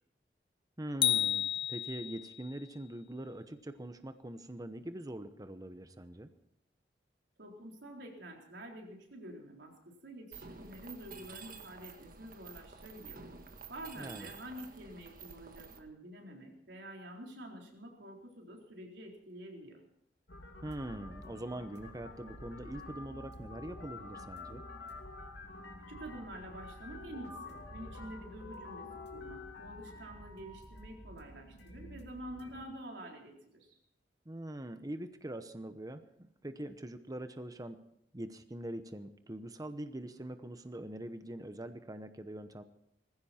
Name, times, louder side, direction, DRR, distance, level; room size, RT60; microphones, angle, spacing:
voice 1, 0.8-6.3 14.0-14.3 20.6-24.6 34.3-37.8 38.1-42.6, right 1 dB, 20° right, 9 dB, 0.9 m, -43 dB
sound 1, 1.0-2.4, left 10 dB, 30° left, 0.5 m, -31 dB
voice 2, 7.4-13.2 13.7-19.8 25.9-33.8, right 1 dB, 90° right, 1 dB, 4.0 m, -48 dB
Mechanisms, 10.3-15.8, right 5 dB, 55° right, 1.7 m, -50 dB
sound 2, 20.3-32.6, left 2 dB, 80° left, 2.8 m, -48 dB
20.0 x 15.5 x 4.4 m, 0.76 s
head